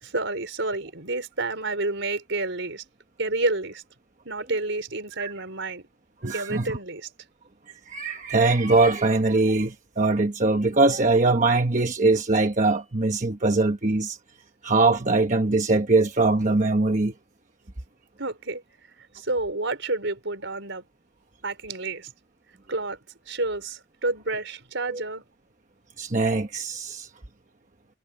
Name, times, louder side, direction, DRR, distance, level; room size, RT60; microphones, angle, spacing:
voice 1, 0.0-2.8 3.2-3.8 4.2-5.8 6.3-7.1 18.2-18.6 19.1-20.9 21.4-22.1 22.7-23.0 23.3-25.2, right 2 dB, 70° right, 5.0 m, -29 dB
voice 2, 6.2-6.8 7.9-14.2 14.6-17.1 24.9-25.0 26.0-27.1, right 3 dB, 40° right, 1.1 m, -22 dB
head